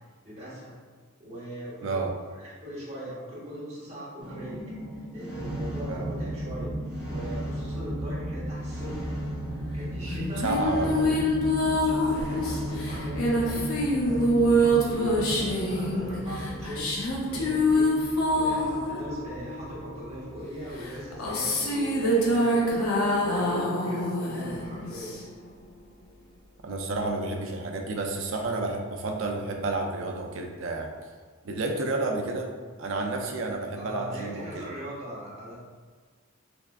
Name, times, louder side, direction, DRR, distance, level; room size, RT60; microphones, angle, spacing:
voice 1, 0.2-0.8 1.2-2.1 2.3-4.6 5.1-9.1 9.7-10.5 10.9-11.1 11.8-25.1 31.8-32.0 33.7-35.5, equal, 30° right, -9 dB, 1.3 m, -40 dB
voice 2, 1.8-2.1 5.8-6.1 10.4-11.2 26.6-30.9 31.4-32.5 32.8-34.7, right 2 dB, 60° right, 2 dB, 0.4 m, -30 dB
sound 1, 4.2-23.4, right 1 dB, 5° right, 0.8 m, -36 dB
sound 2, 10.1-20.0 20.8-25.5, equal, 80° left, 0.7 m, -26 dB
3.5 x 3.3 x 2.3 m, 1.5 s
head